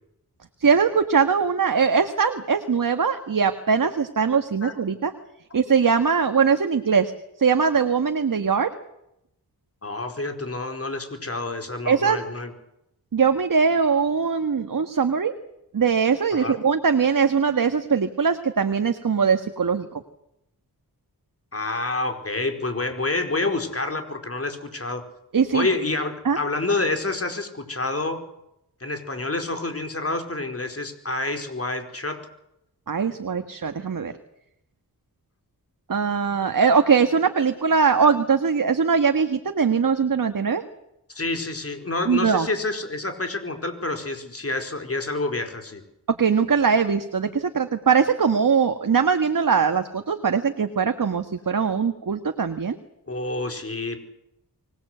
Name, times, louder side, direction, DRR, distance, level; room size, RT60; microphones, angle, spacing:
voice 1, 0.6-5.1 5.5-7.1 7.4-8.7 11.9-12.2 13.1-15.3 15.7-19.9 25.3-25.7 26.3-26.4 32.9-34.1 35.9-40.6 42.1-42.5 46.1-52.8, right 6 dB, 55° right, 7 dB, 1.7 m, -21 dB
voice 2, 9.8-12.5 16.3-16.6 21.5-25.0 25.5-28.2 28.8-32.3 41.1-45.8 53.1-54.0, left 2 dB, 35° left, 5 dB, 4.8 m, -28 dB
24.5 x 19.5 x 8.1 m, 0.81 s
wide cardioid pair, 70°, 38 cm